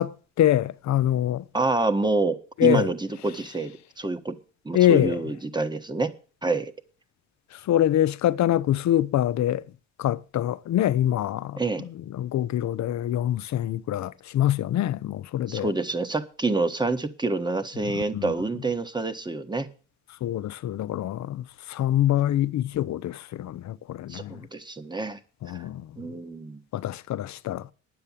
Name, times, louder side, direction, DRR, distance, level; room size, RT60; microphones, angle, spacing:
voice 1, 0.0-1.4 2.6-2.9 4.7-5.2 7.7-9.6 10.0-11.9 12.1-15.7 17.9-18.3 20.2-24.4 25.4-25.9 26.7-27.7, left 12 dB, 65° left, 0.7 m, -25 dB
voice 2, 1.5-4.3 4.6-6.1 6.4-6.7 11.6-11.8 15.5-19.7 24.1-25.2 25.5-25.6 26.0-26.6, right 3 dB, 15° right, 1.3 m, -27 dB
9.7 x 7.8 x 7.3 m
cardioid pair, 90°, 30 cm